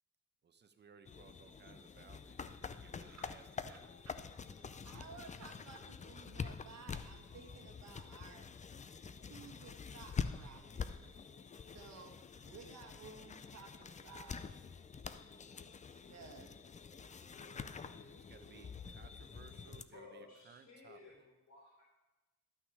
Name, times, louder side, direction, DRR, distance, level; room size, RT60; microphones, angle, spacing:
voice 1, 0.4-3.9 18.1-21.2, right 6 dB, 35° right, 8 dB, 0.9 m, -61 dB
sound 1, 1.0-19.8, left 6 dB, 25° left, 0.5 m, -46 dB
voice 2, 2.4-3.3 3.7-4.2 4.5-8.5 9.0-11.0 11.7-12.2 12.4-14.6 15.8-16.5, right 5 dB, 60° right, 2 dB, 1.3 m, -56 dB
voice 3, 19.9-21.8, left 4 dB, 65° left, -4 dB, 3.6 m, -56 dB
11.5 x 6.0 x 4.8 m, 1.0 s
cardioid pair, 90°, 30 cm